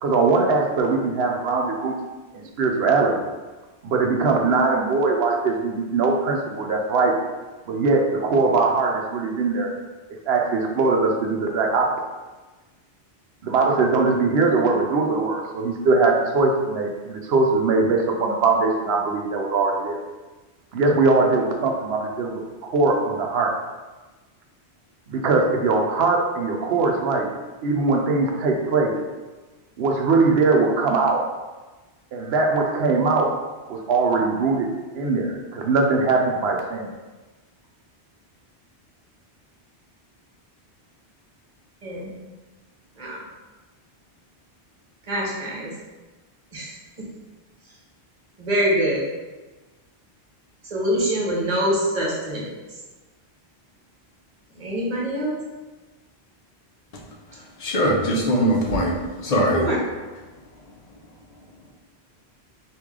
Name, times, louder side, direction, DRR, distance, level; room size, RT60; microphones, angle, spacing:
voice 1, 0.0-2.0 2.3-3.2 3.8-7.2 7.7-9.7 10.3-12.0 13.4-20.0 20.7-23.5 25.1-27.3 27.6-28.9 29.8-31.3 32.1-33.3 33.7-36.9, right 3 dB, 70° right, 2 dB, 0.8 m, -21 dB
voice 2, 45.1-45.7 46.5-46.7 47.0-47.1 48.4-49.0 50.7-52.5 54.6-55.3 59.5-59.8, equal, 40° right, -4 dB, 1.0 m, -24 dB
voice 3, 57.6-59.0 59.2-59.7, equal, 45° left, -2 dB, 0.6 m, -21 dB
3.1 x 2.6 x 3.6 m, 1.2 s
omnidirectional pair, 1.1 m